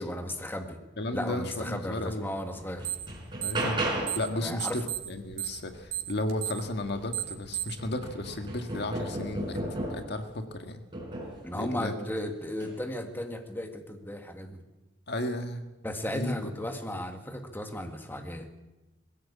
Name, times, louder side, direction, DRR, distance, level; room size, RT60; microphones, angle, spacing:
voice 1, 0.0-0.8 1.1-2.9 4.4-4.8 11.4-14.6 15.8-18.5, left 1 dB, 10° left, 5 dB, 1.8 m, -35 dB
voice 2, 1.0-2.3 3.4-10.8 11.5-11.9 15.1-15.7 16.0-16.5, left 1 dB, 65° left, 6 dB, 1.8 m, -34 dB
sound 1, 2.0-2.1 2.5-4.3 6.7-6.8 7.2-10.2 10.9-11.5 12.5-12.8, right 1 dB, 25° right, 5.6 m, -34 dB
sound 2, 2.8-3.1 3.4-4.3 4.6-7.8, right 13 dB, 85° right, 3.0 m, -33 dB
21.0 x 16.0 x 8.5 m, 1.1 s
head